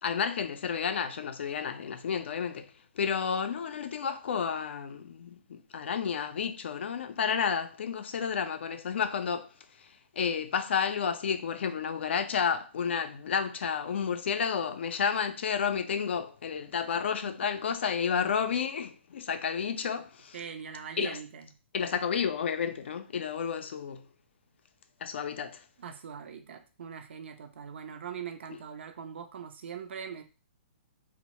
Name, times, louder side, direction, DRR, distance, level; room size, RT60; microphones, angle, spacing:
voice 1, 0.0-9.5 10.2-20.4 21.0-21.2 21.7-24.0 25.0-25.6, left 7 dB, 65° left, 0.4 m, -31 dB
voice 2, 20.3-21.5 25.8-30.2, right 7 dB, 65° right, 0.4 m, -41 dB
2.0 x 2.0 x 2.9 m
hypercardioid pair, 140°, 7 cm